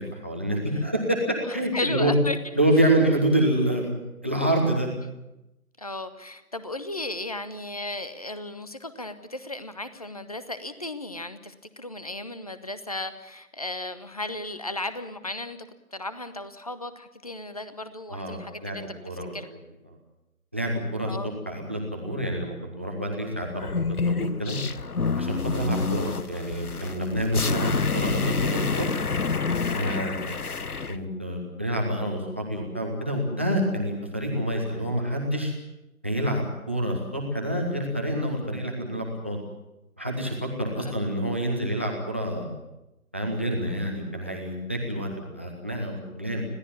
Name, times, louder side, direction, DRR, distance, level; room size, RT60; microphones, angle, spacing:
voice 1, 0.0-2.2 2.6-3.9 4.2-4.9 18.1-18.8 19.0-19.3 20.5-21.1 21.5-24.6 25.1-28.9 29.7-30.4 30.9-35.5 36.0-39.4 40.0-42.5 43.1-46.4, right 1 dB, 10° right, 2 dB, 1.1 m, -27 dB
voice 2, 1.7-2.6 5.0-5.1 5.8-15.6 15.9-18.9 19.3-19.5 21.1-21.3 40.6-41.0, left 2 dB, 25° left, 12 dB, 1.0 m, -35 dB
sound 1, 23.6-31.0, left 4 dB, 85° left, 1.2 m, -28 dB
25.5 x 17.0 x 7.5 m, 0.96 s
figure-of-eight pair, 170°, 43 cm